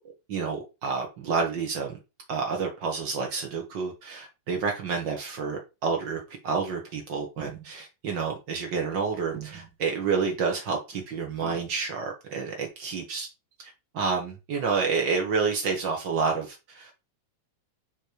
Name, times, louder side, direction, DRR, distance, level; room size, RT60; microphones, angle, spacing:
voice 1, 0.3-2.0 2.3-13.3 13.6-16.9, right 5 dB, 65° right, 1.1 m, -29 dB
sound 1, 7.2-7.7 9.2-9.8 11.4-11.8, right 10 dB, 90° right, 1.0 m, -43 dB
9.9 x 3.4 x 4.5 m
omnidirectional pair, 4.1 m